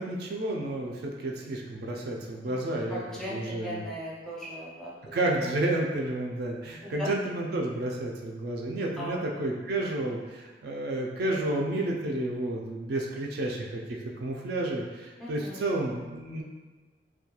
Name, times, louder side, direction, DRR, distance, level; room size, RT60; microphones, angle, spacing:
voice 1, 0.0-3.0 3.3-3.9 5.1-16.4, right 1 dB, 60° right, 0 dB, 0.3 m, -31 dB
voice 2, 2.4-5.2 6.8-7.1 9.0-9.2 15.2-15.7, equal, 5° left, -7 dB, 0.5 m, -39 dB
2.2 x 2.2 x 2.8 m, 1.3 s
head